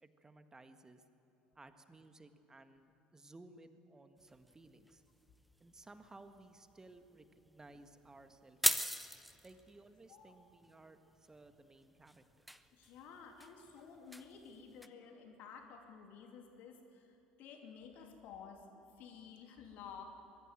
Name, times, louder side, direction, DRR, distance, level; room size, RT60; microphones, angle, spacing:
voice 1, 0.0-1.0 1.6-5.0 5.6-8.9 9.4-12.2, right 2 dB, 15° right, 8 dB, 1.7 m, -58 dB
sound 1, 4.2-14.9, equal, ahead, 0.9 m, -43 dB
voice 2, 12.7-17.1 17.4-18.6 19.0-20.0, left 6 dB, 55° left, 4 dB, 2.6 m, -53 dB
23.5 x 22.0 x 7.9 m, 2.9 s
figure-of-eight pair, 60°, 4 cm